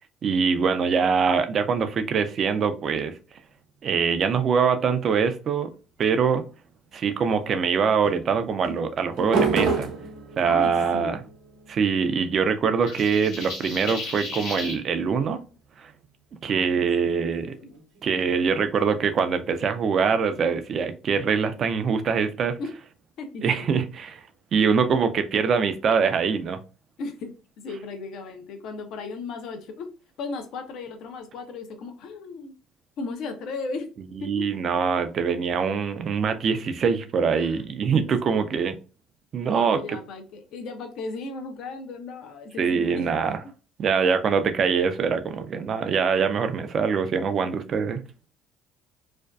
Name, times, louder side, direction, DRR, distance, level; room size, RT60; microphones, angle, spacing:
voice 1, 0.2-3.1 3.8-5.7 6.0-6.4 6.9-9.9 10.4-11.2 11.7-15.4 15.8-15.9 16.4-17.5 18.0-22.6 23.4-24.2 24.5-26.6 34.2-38.7 39.3-40.0 42.6-43.4 43.8-48.0, right 6 dB, 50° right, 0.4 m, -23 dB
sound 1, 6.4-7.0 8.0-14.8 16.6-19.6, right 4 dB, 80° right, 0.7 m, -33 dB
voice 2, 10.4-11.2 16.5-17.3 17.6-17.7 22.6-22.7 23.2-23.6 27.0-29.9 30.2-32.5 33.0-33.9 34.2-34.4 37.4-37.6 39.5-43.1, left 3 dB, 65° left, 0.5 m, -36 dB
sound 2, 12.8-14.8, left 2 dB, 85° left, 0.9 m, -34 dB
2.5 x 2.2 x 2.2 m
supercardioid pair, 75°, 0 cm